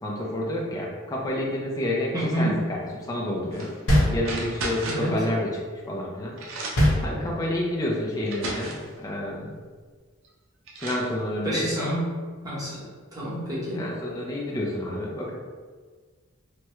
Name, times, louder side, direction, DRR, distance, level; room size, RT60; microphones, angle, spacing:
voice 1, 0.0-3.7 4.1-5.5 5.9-6.4 7.0-9.5 10.8-11.7 13.7-15.3, left 1 dB, 15° left, -3 dB, 0.4 m, -29 dB
voice 2, 2.1-2.6 4.8-5.2 11.4-12.1 12.4-12.9 13.1-13.9, right 1 dB, 15° right, -8 dB, 0.9 m, -28 dB
sound 1, 3.5-3.8 4.2-5.2 6.0-6.1 6.4-7.0 7.8-7.9 8.3-8.9 10.2-10.3 10.7-11.1, right 2 dB, 65° right, 0.5 m, -34 dB
sound 2, 3.9-4.8 6.7-7.7, equal, 75° left, 0.8 m, -22 dB
3.4 x 2.1 x 3.0 m, 1.5 s
head